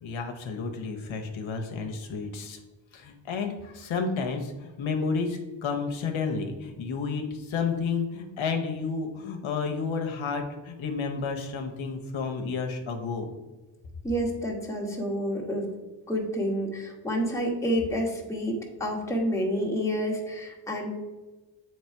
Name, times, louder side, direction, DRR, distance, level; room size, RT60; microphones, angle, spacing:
voice 1, 0.0-2.6 2.9-13.3, left 5 dB, 75° left, 4 dB, 0.9 m, -31 dB
voice 2, 14.0-15.7 16.1-20.9, equal, 5° left, -2 dB, 1.4 m, -29 dB
7.9 x 3.2 x 4.5 m, 1.2 s
cardioid pair, 80°, 47 cm